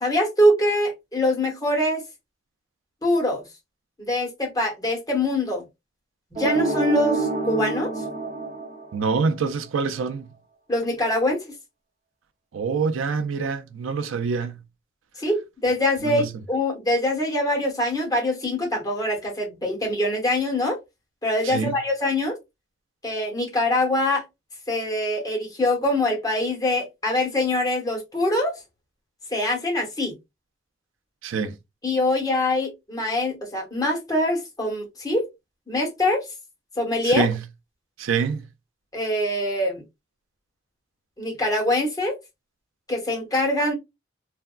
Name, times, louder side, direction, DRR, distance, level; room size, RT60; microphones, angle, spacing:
voice 1, 0.0-2.0 3.0-3.4 4.0-5.6 6.3-7.9 10.7-11.4 15.2-20.8 21.2-22.4 23.0-24.2 24.7-28.5 29.3-30.1 31.8-35.3 35.7-36.2 36.8-37.3 38.9-39.8 41.2-42.2 42.9-43.7, left 1 dB, 20° left, 1.1 m, -24 dB
sound 1, 6.4-9.3, right 3 dB, 35° right, 0.6 m, -27 dB
voice 2, 8.9-10.3 12.5-14.6 16.0-16.3 21.4-21.7 31.2-31.5 37.0-37.4 38.0-38.4, right 5 dB, 90° right, 0.4 m, -25 dB
3.4 x 2.1 x 2.3 m
head